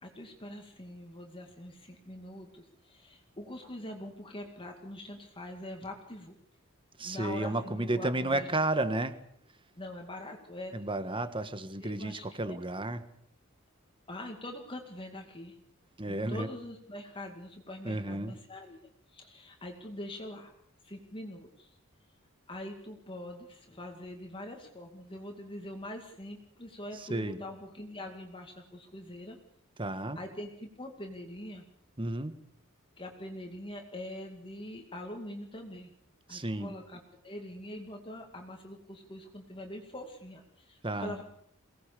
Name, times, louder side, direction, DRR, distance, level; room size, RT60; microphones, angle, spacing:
voice 1, 0.0-6.4 7.0-8.5 9.8-10.8 11.8-12.6 14.1-15.6 16.1-18.8 19.1-20.5 20.8-21.8 22.5-29.4 30.2-31.6 33.0-35.9 36.3-41.2, left 1 dB, 25° left, 3 dB, 2.3 m, -43 dB
voice 2, 7.0-9.2 10.7-13.0 16.0-16.5 17.8-18.3 27.1-27.4 29.8-30.2 32.0-32.3 36.3-36.7 40.8-41.1, right 2 dB, 25° right, 11 dB, 1.5 m, -32 dB
23.0 x 18.0 x 6.9 m, 0.64 s
head